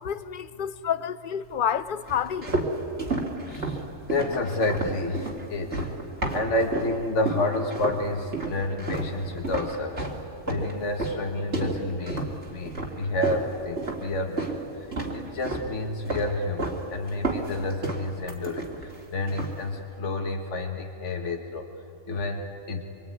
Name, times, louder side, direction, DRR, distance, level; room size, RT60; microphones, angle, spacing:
voice 1, 0.0-2.7, left 8 dB, 50° left, 0.8 m, -29 dB
sound 1, 2.1-7.0 7.3-8.0 8.3-14.6 14.9-15.7 16.1-16.8 17.1-19.0 19.3-19.6, right 3 dB, 60° right, 3.1 m, -31 dB
voice 2, 3.4-5.9 6.3-10.1 10.5-14.5 14.8-21.7 22.1-22.8, left 2 dB, 65° left, 1.9 m, -30 dB
25.5 x 23.5 x 9.5 m
omnidirectional pair, 1.3 m